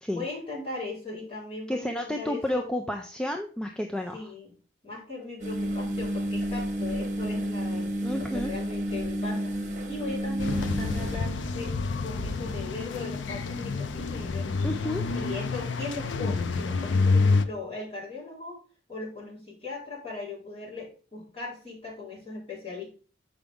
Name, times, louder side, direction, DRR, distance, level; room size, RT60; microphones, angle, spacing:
voice 1, 0.1-2.6 4.1-4.5 4.8-9.5 9.9-14.5 15.1-18.6 18.9-22.9, left 3 dB, 30° left, -7 dB, 4.1 m, -38 dB
voice 2, 1.7-4.3 8.0-8.5 14.6-15.0, left 1 dB, 5° left, 3 dB, 0.4 m, -31 dB
sound 1, 5.4-11.2, equal, 40° right, 1.2 m, -30 dB
sound 2, 10.4-17.4, left 3 dB, 80° left, 0.5 m, -28 dB
7.0 x 5.1 x 3.6 m, 0.37 s
head